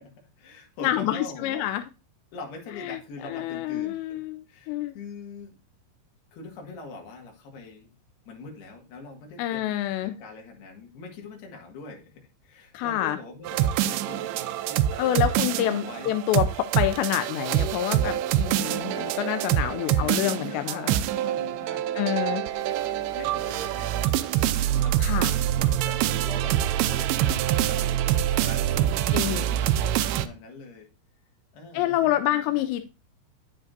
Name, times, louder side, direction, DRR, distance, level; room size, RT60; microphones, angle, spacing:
voice 1, 0.0-1.7 2.3-4.2 4.5-5.6 6.3-7.9 8.3-9.8 10.0-15.4 15.7-16.2 19.7-27.9 28.3-30.9 31.5-32.6, left 3 dB, 70° left, 1 dB, 3.8 m, -43 dB
voice 2, 0.8-1.8 2.8-5.0 9.4-10.2 12.7-13.2 15.0-20.9 22.0-22.4 25.0-25.3 29.1-29.5 31.7-32.9, left 13 dB, 90° left, 9 dB, 2.8 m, -27 dB
sound 1, 13.5-30.3, right 12 dB, 80° right, 2.3 m, -25 dB
9.5 x 8.2 x 2.6 m, 0.29 s
omnidirectional pair, 4.9 m